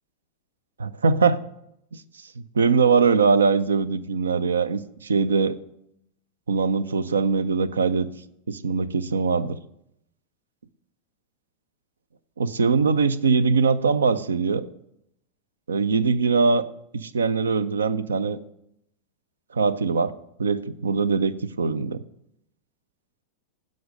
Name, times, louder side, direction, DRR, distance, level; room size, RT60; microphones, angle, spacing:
voice 1, 0.8-1.4 1.9-2.0 2.5-5.6 6.5-8.1 8.5-9.6 12.4-14.7 15.7-16.6 16.9-18.4 19.5-20.1 20.4-22.0, right 5 dB, 70° right, 17 dB, 0.5 m, -22 dB
15.5 x 5.3 x 5.1 m, 0.77 s
figure-of-eight pair, 90°, 0 cm